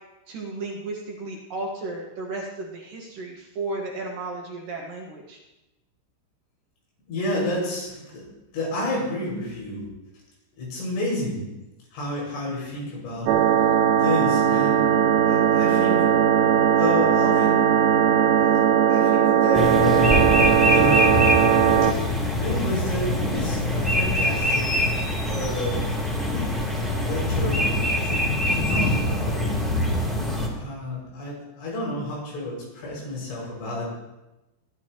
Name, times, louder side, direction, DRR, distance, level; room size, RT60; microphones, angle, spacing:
voice 1, 0.3-5.4, right 2 dB, 60° right, -1 dB, 2.7 m, -34 dB
voice 2, 7.1-8.2 8.5-9.8 10.6-11.4 11.9-13.7 14.0-14.9 15.3-16.1 16.8-17.8 18.1-18.5 18.9-20.1 20.7-21.3 22.4-24.9 25.3-25.9 27.0-28.2 28.5-29.8 30.5-33.9, left 1 dB, 85° left, -4 dB, 8.6 m, -30 dB
sound 1, 13.3-21.9, right 9 dB, 80° right, 2.9 m, -19 dB
sound 2, 19.5-30.5, left 1 dB, ahead, 1.9 m, -23 dB
22.5 x 11.5 x 3.0 m, 1.0 s
omnidirectional pair, 5.3 m